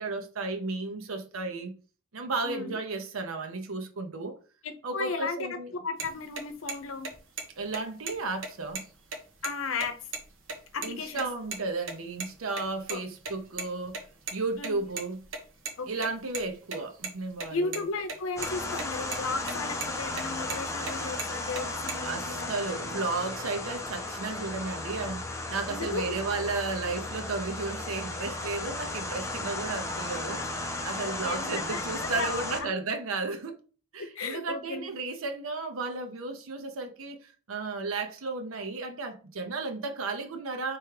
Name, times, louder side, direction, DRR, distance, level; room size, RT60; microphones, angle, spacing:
voice 1, 0.0-1.8 2.1-4.4 4.8-5.7 7.6-8.9 10.8-14.0 14.3-15.2 15.8-17.9 22.0-33.6 33.9-40.8, right 3 dB, 85° right, 0.7 m, -34 dB
voice 2, 2.4-2.8 4.6-5.4 5.8-7.1 9.4-9.9 10.7-11.2 12.9-13.0 14.6-14.8 15.8-16.1 17.5-23.0 25.7-26.1 31.0-32.5 34.1-34.9, left 4 dB, 75° left, 0.7 m, -35 dB
sound 1, 6.0-6.1 6.4-6.5 6.7-6.8 7.0-7.4 7.7-7.8 8.1-8.2 8.4-9.5 9.8-9.9 10.1-10.2 10.5-10.9 11.2-11.6 11.9-12.9 13.2-15.7 16.0-17.8 18.1-18.2 18.4-18.8 19.1-19.5 19.8-20.9 21.2-21.9, right 4 dB, 65° right, 1.0 m, -36 dB
sound 2, 18.4-32.6, left 2 dB, 15° left, 0.6 m, -35 dB
3.5 x 3.1 x 4.7 m
head